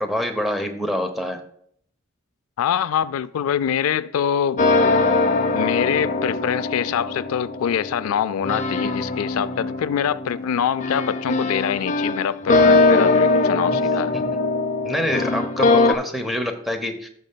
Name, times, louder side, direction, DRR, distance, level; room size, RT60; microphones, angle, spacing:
voice 1, 0.0-1.4 14.1-14.2 14.8-17.1, left 1 dB, ahead, 0.7 m, -26 dB
voice 2, 2.6-4.6 5.5-14.2, left 8 dB, 90° left, 0.3 m, -24 dB
sound 1, 4.6-15.9, left 3 dB, 35° left, 0.5 m, -21 dB
15.0 x 6.4 x 2.2 m
head